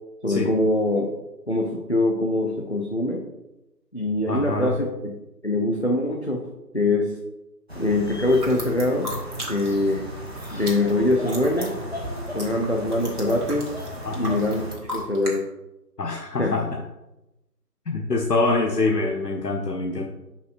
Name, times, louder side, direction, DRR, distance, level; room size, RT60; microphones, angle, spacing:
voice 1, 0.2-1.1 1.5-3.3 3.9-5.2 5.4-6.5 6.7-7.2 7.8-9.1 9.5-10.0 10.5-11.8 12.3-13.7 14.2-15.4 16.4-16.5, left 2 dB, 45° left, 0 dB, 0.5 m, -23 dB
voice 2, 4.3-4.8 14.0-14.4 16.0-16.8 17.9-20.1, left 3 dB, 75° left, 1 dB, 0.9 m, -25 dB
sound 1, 7.7-14.8, equal, 40° right, 0.9 m, -35 dB
sound 2, 8.3-9.9 10.2-15.4, equal, 65° right, 2.1 m, -37 dB
8.6 x 5.7 x 2.5 m, 0.95 s
figure-of-eight pair, 165°, 50 cm